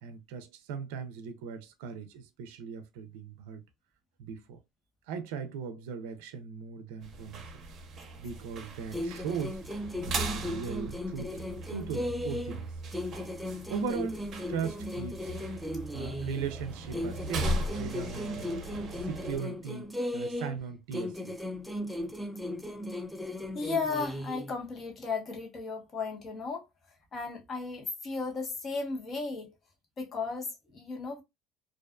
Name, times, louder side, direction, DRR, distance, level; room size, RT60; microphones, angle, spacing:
voice 1, 0.0-3.6 4.2-4.6 5.1-7.5 8.2-9.6 10.0-11.4 11.7-12.7 13.7-15.3 15.9-18.5 18.9-21.4, right 6 dB, 90° right, 0.4 m, -38 dB
sound 1, 7.0-19.4, right 1 dB, 45° right, 0.8 m, -38 dB
Teenage Ant Marching Band, 8.9-12.6 12.9-16.5 16.9-20.6 20.9-24.5, left 1 dB, ahead, 0.3 m, -37 dB
voice 2, 23.5-26.7 27.1-29.5 30.0-31.2, left 4 dB, 35° left, 1.0 m, -35 dB
2.4 x 2.3 x 2.2 m
cardioid pair, 120°, 0 cm